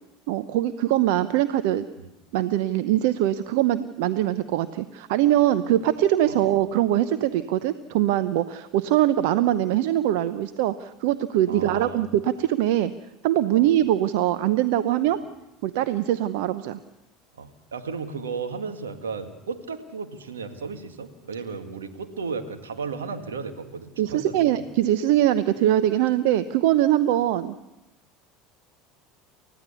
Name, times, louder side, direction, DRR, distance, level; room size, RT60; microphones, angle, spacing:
voice 1, 0.3-1.8 2.3-12.9 13.2-15.2 15.6-16.8 24.0-27.5, right 12 dB, 65° right, 13 dB, 0.8 m, -22 dB
voice 2, 11.5-12.0 13.5-13.7 15.1-15.2 17.4-24.6, right 5 dB, 85° right, 6 dB, 2.0 m, -34 dB
29.5 x 15.0 x 7.0 m, 0.95 s
hypercardioid pair, 75°, 0 cm